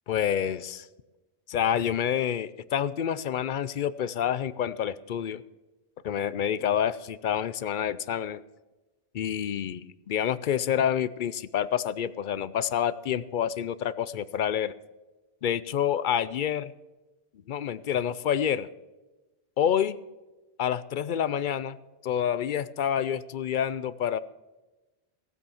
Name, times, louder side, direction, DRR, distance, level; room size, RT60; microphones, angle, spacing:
voice 1, 0.1-0.9 1.5-5.4 6.0-8.4 9.1-14.7 15.4-16.7 17.5-18.7 19.6-20.0 20.6-21.8 22.0-24.2, left 9 dB, 60° left, 16 dB, 0.6 m, -28 dB
15.5 x 8.3 x 7.0 m, 1.1 s
omnidirectional pair, 1.1 m